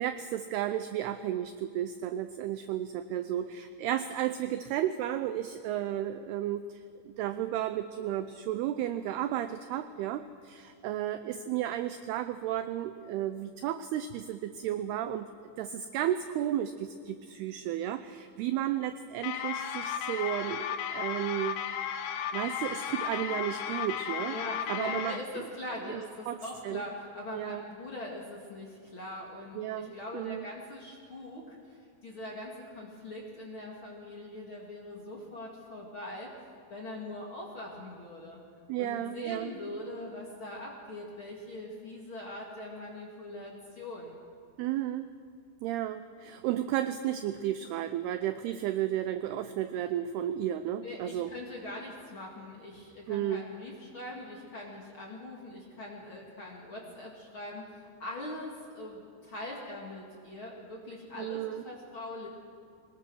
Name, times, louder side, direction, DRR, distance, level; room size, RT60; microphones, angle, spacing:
voice 1, 0.0-6.8 7.2-15.3 15.6-21.6 22.3-24.4 24.7-25.2 25.9-26.4 26.6-26.8 27.3-27.6 29.6-30.4 38.7-39.5 44.6-45.1 45.6-51.3 53.1-53.4 61.2-61.6, right 11 dB, 85° right, 10 dB, 2.3 m, -33 dB
sound 1, 19.2-25.2, left 9 dB, 85° left, 3.4 m, -34 dB
voice 2, 24.3-36.3 36.7-38.4 38.8-44.2 50.8-62.3, left 1 dB, 40° left, -2 dB, 2.1 m, -42 dB
23.5 x 19.5 x 6.3 m, 2.3 s
omnidirectional pair, 5.4 m